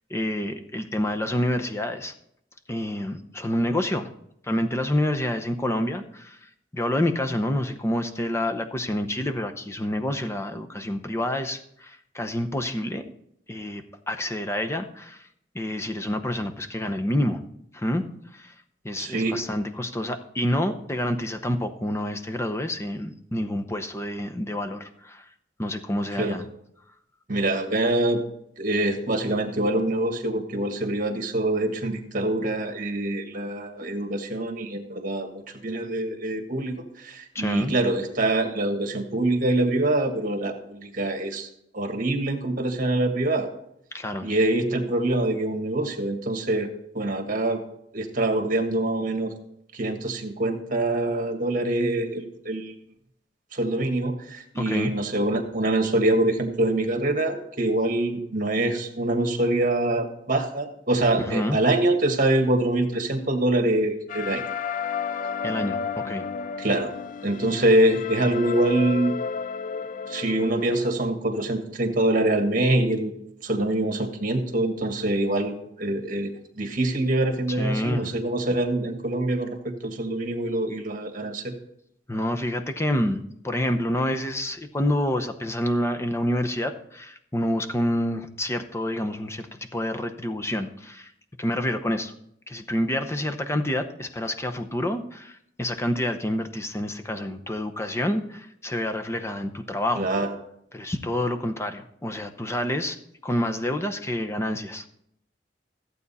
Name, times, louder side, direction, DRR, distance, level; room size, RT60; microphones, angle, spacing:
voice 1, 0.1-2.1 2.7-4.1 4.4-6.4 6.7-13.0 13.5-15.2 15.5-17.4 17.7-18.0 18.3-18.5 18.8-25.2 25.6-26.5 37.3-37.7 43.9-44.3 54.6-54.9 61.3-61.6 65.4-66.3 77.5-78.1 82.1-89.5 89.7-91.1 91.4-92.1 92.5-100.1 100.7-103.0 103.2-104.9, left 1 dB, 15° left, 6 dB, 0.8 m, -28 dB
voice 2, 19.0-19.4 26.2-26.4 27.3-28.2 28.6-41.5 41.7-43.5 44.2-46.7 46.9-47.6 47.9-49.3 49.7-52.7 53.5-64.4 66.6-66.9 67.2-69.1 70.1-73.2 73.4-76.3 76.6-81.5 99.9-100.3, right 1 dB, 50° right, 5 dB, 1.6 m, -25 dB
sound 1, 64.1-70.9, left 6 dB, 45° left, 0.3 m, -32 dB
14.5 x 8.3 x 4.2 m, 0.74 s
head